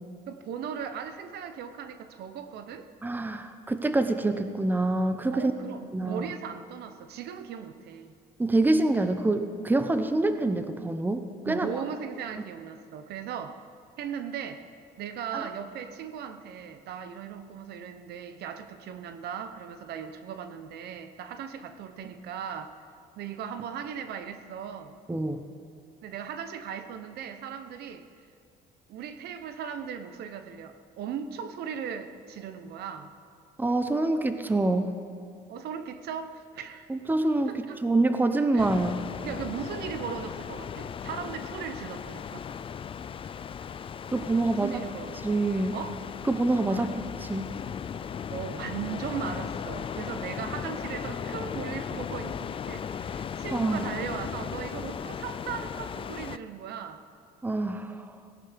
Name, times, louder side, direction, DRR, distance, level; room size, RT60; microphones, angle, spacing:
voice 1, 0.3-2.9 5.3-8.1 11.4-13.6 14.0-14.6 15.0-22.7 23.2-24.9 26.0-28.1 28.9-33.1 35.5-36.9 37.5-37.8 38.5-38.7 39.2-42.5 44.5-45.2 45.7-46.0 46.7-47.0 48.3-57.0, right 7 dB, 70° right, 9 dB, 0.9 m, -38 dB
voice 2, 3.0-5.5 5.9-6.3 8.4-11.7 15.3-15.4 25.1-25.4 33.6-34.9 36.9-39.0 44.1-44.7 45.2-45.8 46.3-46.9 47.3-47.5 53.5-53.9 57.4-58.0, right 2 dB, 10° right, 8 dB, 0.8 m, -26 dB
sound 1, 38.6-56.4, left 7 dB, 30° left, 0.4 m, -37 dB
17.5 x 11.0 x 5.2 m, 2.3 s
cardioid pair, 110°, 17 cm